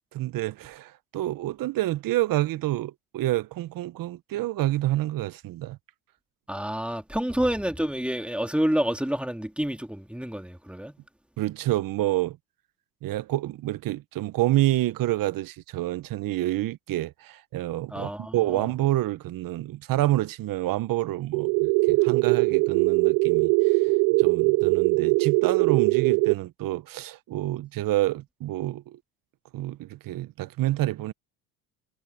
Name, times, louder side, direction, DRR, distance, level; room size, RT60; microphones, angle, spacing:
voice 1, 0.1-5.8 11.4-12.4 13.0-23.8 24.2-29.0 29.5-31.1, right 16 dB, 60° right, 1.1 m, -28 dB
voice 2, 6.5-10.9 17.9-18.6, equal, 5° right, 3.1 m, -28 dB
sound 1, 21.3-26.3, right 27 dB, 75° right, 0.8 m, -21 dB
supercardioid pair, 70°, 38 cm